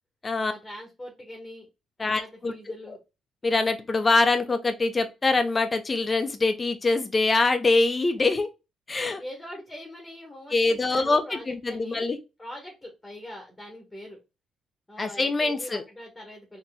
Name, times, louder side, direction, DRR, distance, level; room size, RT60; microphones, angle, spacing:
voice 1, 0.4-1.7 2.0-3.0 9.2-12.1 12.4-14.2 14.9-16.6, left 1 dB, 10° left, 1.5 m, -42 dB
voice 2, 2.0-2.5 2.9-3.0 3.4-8.5 8.9-9.2 10.5-12.2 15.0-15.8, left 3 dB, 30° left, 0.8 m, -24 dB
4.2 x 3.0 x 2.2 m
cardioid pair, 90°, 0 cm